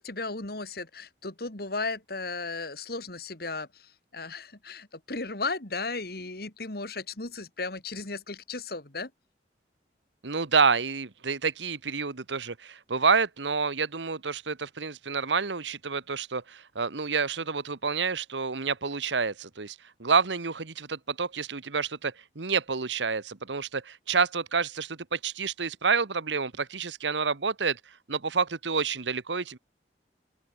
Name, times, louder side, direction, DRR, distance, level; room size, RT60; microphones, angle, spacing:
voice 1, 0.0-9.1, left 3 dB, 60° left, 2.7 m, -35 dB
voice 2, 10.2-27.8 28.1-29.6, right 5 dB, 90° right, 1.3 m, -28 dB
open air
head